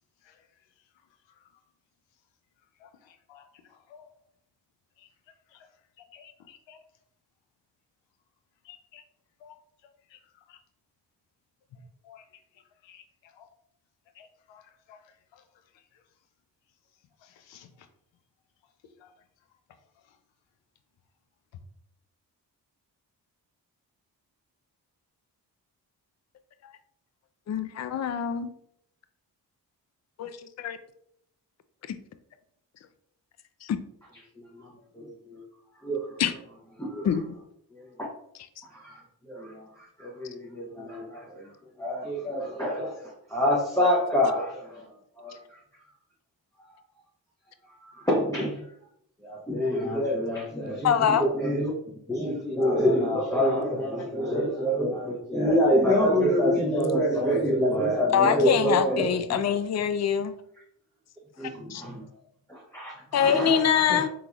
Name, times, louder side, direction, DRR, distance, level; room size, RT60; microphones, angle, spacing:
voice 1, 6.1-6.8 8.7-9.0 9.4-9.5 12.1-12.2 12.9-13.0 13.4-13.5 14.2-14.3 17.5-17.7, left 9 dB, 90° left, 6 dB, 0.5 m, -51 dB
voice 2, 27.5-28.5 30.2-30.8 31.9-32.0 33.6-33.8 36.2-36.3 37.0-37.3 50.8-51.2 58.1-60.3 61.7-61.8 63.1-64.1, left 8 dB, 40° left, 11 dB, 0.4 m, -24 dB
voice 3, 34.9-35.4 35.8-36.2 36.8-37.2 37.7-38.1 38.7-41.5 41.8-45.6 46.7-46.8 47.8-48.6 49.2-51.7 52.1-59.1 61.4-62.1 62.5-64.0, equal, 5° left, -5 dB, 0.7 m, -27 dB
3.8 x 3.0 x 2.4 m, 0.72 s
supercardioid pair, 45°, 44 cm